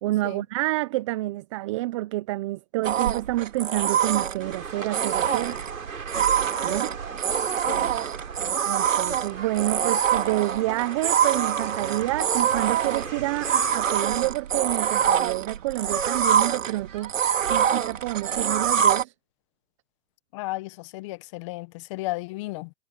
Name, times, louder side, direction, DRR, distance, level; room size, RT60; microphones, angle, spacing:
voice 1, 0.0-5.6 6.6-6.9 8.7-17.1 17.5-19.1, right 18 dB, 25° right, 0.8 m, -28 dB
sound 1, 2.8-19.0, right 8 dB, 70° right, 2.5 m, -25 dB
sound 2, 4.4-14.3, right 5 dB, 85° right, 7.4 m, -37 dB
voice 2, 20.3-22.7, left 20 dB, 25° left, 0.9 m, -34 dB
hypercardioid pair, 145°, 40 cm